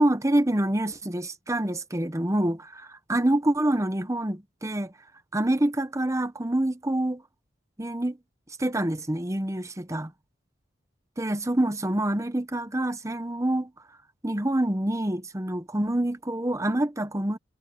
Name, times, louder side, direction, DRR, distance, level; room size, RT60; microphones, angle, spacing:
voice 1, 0.0-4.9 5.3-7.2 7.8-8.2 8.6-10.1 11.2-13.7 14.2-17.4, right 1 dB, 15° right, 1.0 m, -26 dB
head